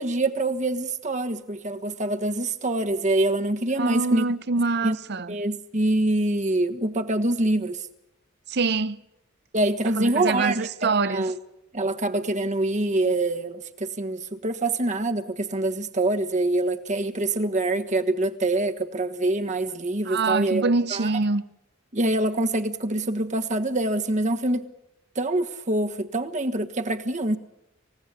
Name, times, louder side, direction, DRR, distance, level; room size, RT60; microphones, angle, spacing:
voice 1, 0.0-4.3 4.6-5.0 5.3-7.8 9.5-11.4 11.7-21.1 21.9-24.7 25.1-27.4, right 2 dB, 35° right, 1.4 m, -25 dB
voice 2, 3.8-5.3 8.5-9.0 10.0-11.3 20.0-21.5, right 3 dB, 55° right, 0.8 m, -25 dB
28.0 x 16.5 x 8.4 m
head